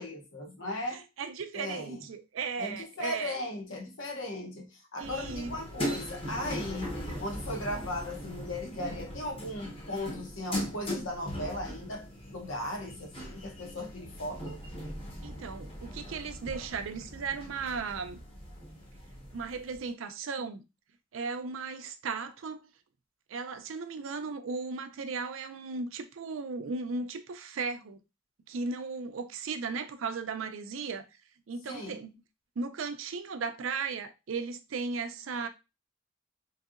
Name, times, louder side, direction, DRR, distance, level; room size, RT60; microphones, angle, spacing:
voice 1, 0.0-1.0 1.5-2.0 2.6-14.6 31.7-32.0, left 1 dB, 75° left, 1.1 m, -37 dB
voice 2, 1.2-3.4 5.0-5.6 5.8-6.0 15.2-18.2 19.3-20.6 21.1-22.7 23.3-28.0 28.5-31.1 31.5-32.1 32.6-35.5, right 4 dB, 90° right, 0.5 m, -36 dB
sound 1, 5.0-19.8, equal, 30° left, 0.8 m, -40 dB
3.2 x 2.7 x 2.4 m
head